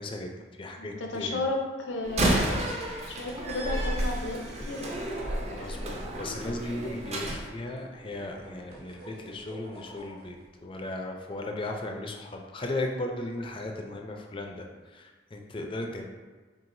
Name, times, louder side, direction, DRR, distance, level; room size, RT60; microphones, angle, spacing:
voice 1, 0.0-1.4 5.5-16.0, left 2 dB, 30° left, 2 dB, 0.4 m, -36 dB
voice 2, 0.8-2.8 3.1-4.9, left 2 dB, 80° left, 1 dB, 0.6 m, -33 dB
Slam, 2.0-7.4, right 1 dB, 35° right, 0.6 m, -31 dB
sound 1, 4.2-10.5, right 1 dB, 55° right, 1.4 m, -48 dB
4.6 x 3.4 x 2.6 m, 1.4 s
head